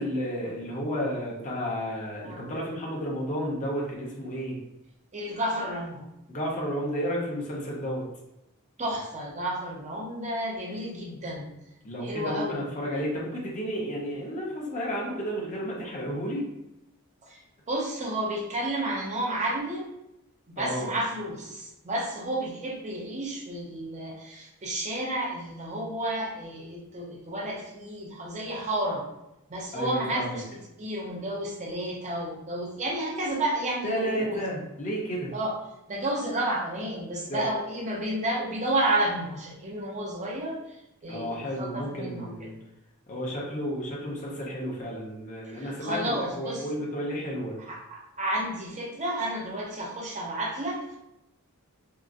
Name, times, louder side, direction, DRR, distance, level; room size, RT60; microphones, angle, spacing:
voice 1, 0.0-4.6 6.3-8.0 11.8-16.4 20.6-20.9 29.7-30.4 33.8-35.3 37.3-37.5 41.1-42.5 43.1-47.6, equal, 35° left, -3 dB, 0.7 m, -32 dB
voice 2, 5.1-6.0 8.8-11.5 12.0-12.7 17.2-19.9 20.5-29.0 29.5-34.4 35.3-35.5 35.9-40.8 41.0-42.5 45.4-46.6 47.7-51.0, right 1 dB, 30° right, -1 dB, 0.5 m, -31 dB
3.7 x 2.0 x 2.5 m, 0.91 s
head